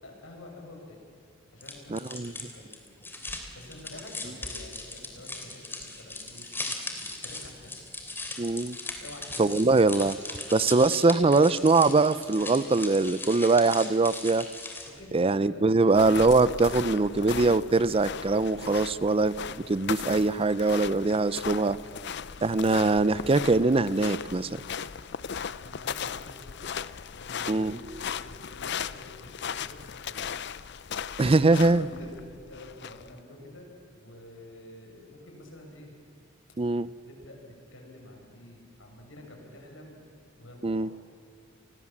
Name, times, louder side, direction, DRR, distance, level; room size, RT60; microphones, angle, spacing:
voice 1, 0.0-1.1 1.5-3.0 3.5-6.5 7.0-7.8 9.0-9.6 14.9-15.9 25.4-26.7 27.1-30.4 31.7-33.7 33.9-35.9 37.0-40.9, left 1 dB, 75° left, 1 dB, 6.8 m, -48 dB
sound 1, 1.6-15.0, left 2 dB, 10° left, 3.1 m, -39 dB
voice 2, 1.9-2.3 8.4-8.8 9.4-14.4 15.1-19.3 19.7-21.8 22.4-24.6 27.5-27.8 31.2-31.9 36.6-36.9 40.6-40.9, right 3 dB, 30° right, 17 dB, 0.5 m, -22 dB
sound 2, 15.9-33.2, left 7 dB, 60° left, 0.7 m, -37 dB
29.5 x 21.0 x 7.3 m, 2.6 s
head